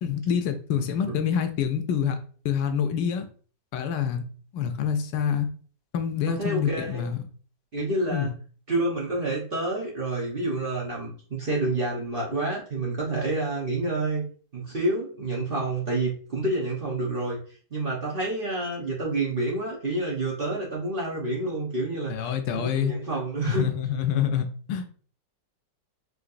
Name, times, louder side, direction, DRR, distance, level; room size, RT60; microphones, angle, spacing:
voice 1, 0.0-2.2 2.4-3.3 3.7-4.2 4.5-5.5 5.9-7.2 8.1-8.3 22.1-22.9 23.5-24.9, left 8 dB, 80° left, 6 dB, 1.2 m, -26 dB
voice 2, 6.3-7.0 7.7-8.3 8.7-14.2 14.5-17.4 17.7-22.2 22.5-23.7, right 2 dB, 40° right, -4 dB, 0.9 m, -28 dB
4.9 x 3.2 x 2.5 m, 0.42 s
omnidirectional pair, 1.9 m